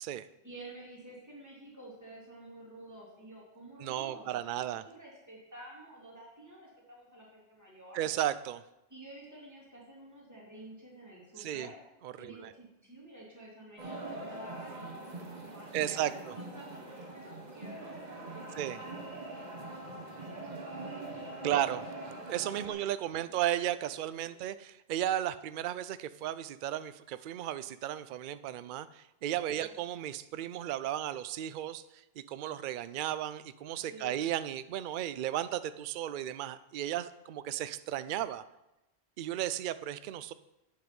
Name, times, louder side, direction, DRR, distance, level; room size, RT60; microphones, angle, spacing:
voice 1, 0.4-8.0 8.9-11.8 12.2-18.0 18.3-21.1 22.6-22.8 24.2-24.4 29.6-29.8 33.9-34.2, right 1 dB, 15° right, -6 dB, 3.4 m, -51 dB
voice 2, 3.8-4.8 7.9-8.6 11.4-11.7 12.0-12.4 15.7-16.3 18.5-18.8 21.4-21.8 22.3-31.8 32.3-38.4 39.2-40.3, right 12 dB, 60° right, 14 dB, 0.6 m, -34 dB
sound 1, 13.8-22.7, right 2 dB, 45° right, 1.3 m, -43 dB
8.6 x 7.8 x 5.4 m, 0.90 s
omnidirectional pair, 1.1 m